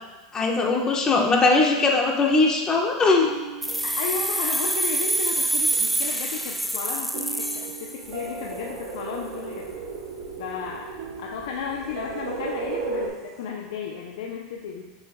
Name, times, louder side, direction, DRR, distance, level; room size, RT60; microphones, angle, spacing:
voice 1, 0.3-3.3, left 3 dB, 25° left, 0 dB, 1.1 m, -20 dB
sound 1, 3.2-5.7 7.1-9.6 11.0-13.5, right 6 dB, 70° right, 0.7 m, -41 dB
sound 2, 3.6-8.4, right 1 dB, ahead, 0.5 m, -26 dB
voice 2, 3.8-9.7 10.4-10.9 11.2-14.9, left 6 dB, 75° left, 0 dB, 0.6 m, -34 dB
sound 3, 8.0-13.1, right 3 dB, 90° right, 1.2 m, -35 dB
6.9 x 6.9 x 2.3 m, 1.1 s
supercardioid pair, 120°, 3 cm